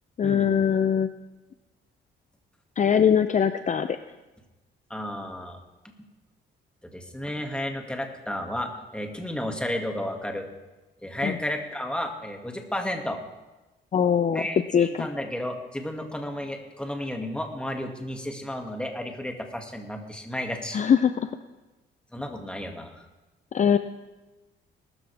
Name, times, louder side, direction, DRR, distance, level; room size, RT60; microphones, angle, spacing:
voice 1, 0.2-1.1 2.8-4.0 11.2-11.4 13.9-14.4 14.7-15.1 20.7-21.3 23.5-23.8, left 8 dB, 40° left, 10 dB, 0.6 m, -22 dB
voice 2, 4.9-5.6 6.9-10.5 11.0-13.2 14.3-20.8 22.1-23.0, left 1 dB, 5° left, 3 dB, 2.2 m, -32 dB
19.5 x 13.0 x 3.5 m, 1.1 s
cardioid pair, 90°, 20 cm